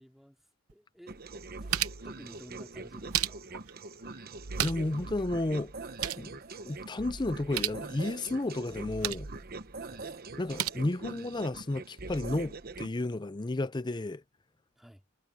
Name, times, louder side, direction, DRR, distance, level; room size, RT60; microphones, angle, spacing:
voice 1, 0.0-1.8 2.0-3.4 9.9-10.1 14.8-15.0, equal, ahead, 3.1 m, -53 dB
Tapping regular Keys on Keyboard, 0.7-0.8 1.3-2.2 2.8-3.7 4.3-5.0 5.3-5.4 5.7-6.3 7.3-7.8 8.7-9.3 10.3-10.7, right 10 dB, 85° right, 0.9 m, -34 dB
sound 1, 1.1-12.9, right 3 dB, 45° right, 1.1 m, -43 dB
voice 2, 4.6-5.7 6.2-6.3 6.6-9.3 10.4-14.2, left 2 dB, 20° left, 0.5 m, -32 dB
head